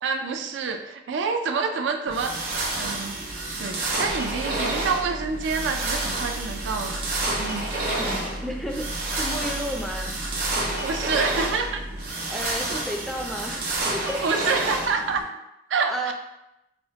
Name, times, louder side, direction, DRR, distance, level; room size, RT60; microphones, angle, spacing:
voice 1, 0.0-3.2 3.6-7.0 7.4-7.7 10.7-11.8 14.0-15.2 15.7-16.1, right 5 dB, 80° right, 6 dB, 0.4 m, -27 dB
sound 1, 2.1-15.2, right 2 dB, 55° right, 0.7 m, -29 dB
sound 2, 4.1-12.1, right 1 dB, 80° left, 0.8 m, -37 dB
voice 2, 8.0-10.2 12.3-14.2 15.9-16.1, equal, ahead, 1 dB, 0.3 m, -32 dB
4.1 x 2.0 x 2.8 m, 0.92 s
head